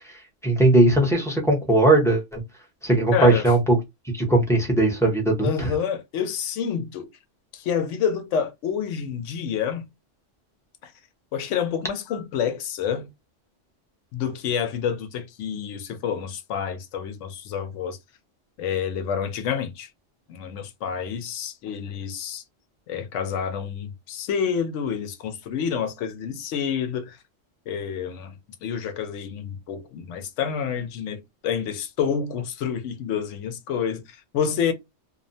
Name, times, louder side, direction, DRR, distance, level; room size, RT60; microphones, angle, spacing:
voice 1, 0.4-2.4 2.8-3.8 4.1-5.7, right 2 dB, 5° left, 0.6 m, -19 dB
voice 2, 3.1-3.5 5.4-7.1 7.5-9.9 10.8-10.9 11.3-13.1 14.1-18.0 18.6-19.9 20.3-22.4 22.9-27.2 27.7-34.7, left 7 dB, 75° left, 0.9 m, -28 dB
2.6 x 2.0 x 2.6 m
omnidirectional pair, 1.3 m